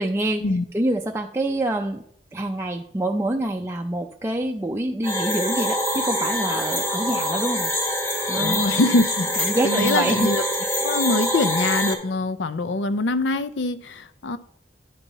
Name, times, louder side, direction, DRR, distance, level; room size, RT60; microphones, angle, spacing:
voice 1, 0.0-0.4 0.7-2.0 2.3-7.7 8.3-8.8 9.4-10.3, right 1 dB, 15° right, 2 dB, 0.4 m, -26 dB
sound 1, 5.0-11.9, equal, 15° left, 1.3 m, -25 dB
voice 2, 8.4-10.4 10.8-14.4, left 2 dB, 85° left, 13 dB, 0.5 m, -24 dB
11.0 x 5.5 x 4.0 m, 0.68 s
head